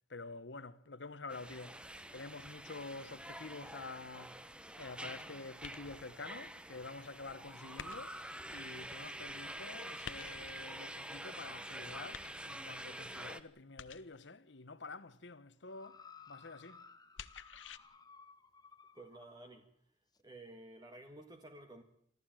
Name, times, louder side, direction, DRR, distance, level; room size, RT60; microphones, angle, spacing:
voice 1, 0.1-4.5 4.8-8.2 8.5-16.8, left 3 dB, 70° left, 1.2 m, -48 dB
sound 1, 1.3-13.4, right 1 dB, 5° right, 1.1 m, -47 dB
sound 2, 5.6-6.2 7.8-8.4 10.0-10.7 12.1-12.8 13.8-14.3 17.2-17.8, left 7 dB, 90° left, 1.1 m, -49 dB
sound 3, 15.7-19.3 20.2-20.3, left 5 dB, 20° left, 1.2 m, -58 dB
voice 2, 18.9-19.9 20.2-21.8, right 2 dB, 20° right, 1.8 m, -53 dB
26.5 x 15.0 x 9.0 m
head